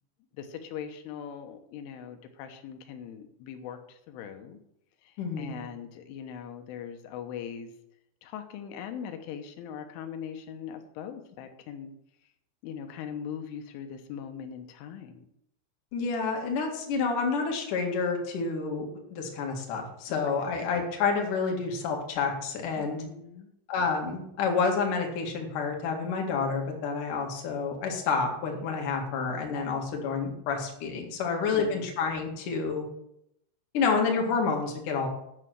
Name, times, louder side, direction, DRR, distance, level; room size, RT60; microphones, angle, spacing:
voice 1, 0.4-4.6 5.0-7.7 8.2-11.9 12.6-15.3 20.1-20.2 22.8-23.5 31.3-31.9, left 8 dB, 90° left, 6 dB, 3.6 m, -41 dB
voice 2, 5.2-5.6 15.9-23.0 23.7-32.8 33.7-35.1, left 5 dB, 50° left, 1 dB, 3.2 m, -29 dB
9.0 x 8.1 x 7.8 m, 0.77 s
omnidirectional pair, 5.4 m